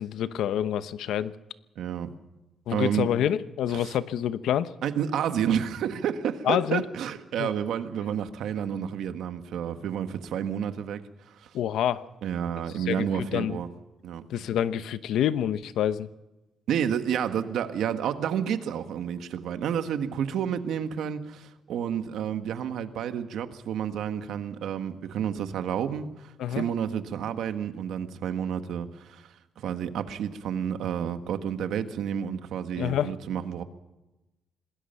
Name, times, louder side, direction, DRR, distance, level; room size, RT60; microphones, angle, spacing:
voice 1, 0.0-1.3 2.7-4.7 6.4-6.8 7.4-7.5 11.5-12.0 12.9-13.6 14.3-16.1 26.4-26.6 32.7-33.1, left 10 dB, 85° left, 13 dB, 0.9 m, -27 dB
voice 2, 1.8-2.1 2.7-3.1 3.7-4.0 4.8-11.5 12.2-13.7 14.0-14.2 16.7-29.3 29.6-33.6, right 8 dB, 80° right, 9 dB, 1.6 m, -30 dB
26.5 x 20.0 x 5.7 m, 1.0 s
cardioid pair, 155°, 0 cm